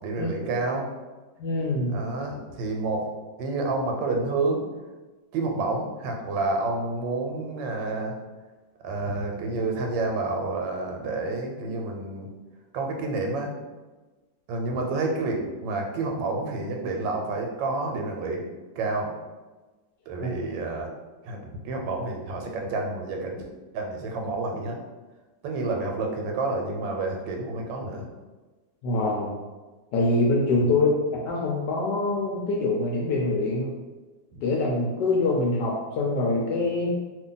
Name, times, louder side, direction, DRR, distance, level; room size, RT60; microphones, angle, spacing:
voice 1, 0.0-0.9 1.9-3.1 3.4-4.6 5.3-8.1 8.8-12.3 12.7-13.5 14.5-18.4 18.8-19.1 20.1-20.9 21.2-23.4 23.7-24.8 25.4-28.1 30.6-30.8 34.3-34.4, right 3 dB, 85° right, 2 dB, 1.3 m, -29 dB
voice 2, 1.4-1.9 20.2-20.3 28.8-29.3 29.9-30.9 31.2-33.7 34.4-36.9, left 2 dB, 75° left, -2 dB, 1.1 m, -24 dB
2.8 x 2.5 x 3.8 m, 1.2 s
omnidirectional pair, 2.0 m